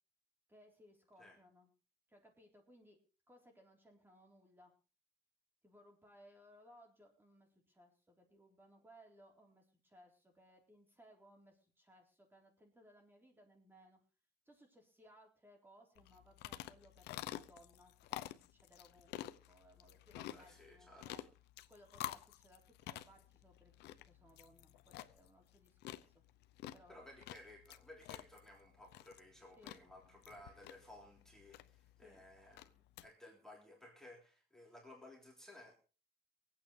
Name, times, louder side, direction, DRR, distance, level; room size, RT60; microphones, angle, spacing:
voice 1, 0.5-1.7 2.1-3.0 3.3-4.7 5.6-14.0 14.5-21.2 21.7-23.7 24.0-26.0 26.7-27.0 29.6-29.8 32.0-32.2, equal, 10° right, 2 dB, 3.8 m, -64 dB
sound 1, 16.0-33.1, left 14 dB, 80° left, 0.7 m, -50 dB
voice 2, 20.1-21.3 26.9-32.7 33.0-35.8, left 1 dB, 5° left, -1 dB, 3.4 m, -58 dB
24.5 x 8.8 x 3.3 m, 0.35 s
cardioid pair, 110°, 17 cm